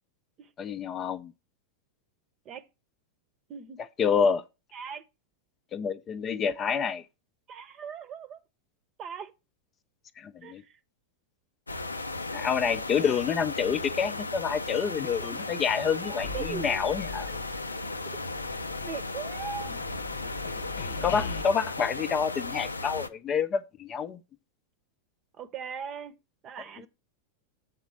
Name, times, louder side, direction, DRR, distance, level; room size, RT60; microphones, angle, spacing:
voice 1, 0.6-1.3 4.0-4.4 5.7-7.0 10.2-10.6 12.3-17.3 21.0-24.2, left 6 dB, 25° left, 0.5 m, -28 dB
voice 2, 3.5-3.8 4.7-5.1 7.5-8.4 9.0-9.3 10.4-10.8 16.0-16.8 17.3-17.4 18.1-18.2 18.8-19.7 25.3-26.1 26.4-26.9, right 7 dB, 30° right, 0.9 m, -39 dB
sound 1, 11.7-23.1, left 2 dB, 80° left, 0.5 m, -36 dB
sound 2, 16.2-17.9 18.2-21.4, left 4 dB, 65° left, 0.9 m, -40 dB
7.4 x 4.0 x 5.7 m
figure-of-eight pair, 90°, 0 cm